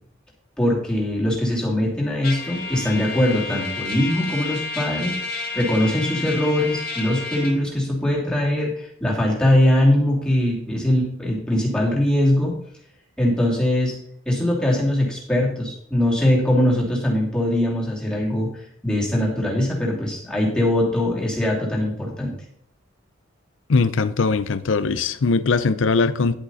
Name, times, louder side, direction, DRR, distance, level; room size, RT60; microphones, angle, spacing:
voice 1, 0.6-5.1 5.5-12.5 13.2-13.9 14.2-22.3, left 1 dB, 5° left, 2.9 m, -21 dB
Trumpet, 2.2-7.6, left 3 dB, 50° left, 2.2 m, -31 dB
voice 2, 23.7-26.4, left 4 dB, 80° left, 0.6 m, -20 dB
11.0 x 8.0 x 4.2 m
head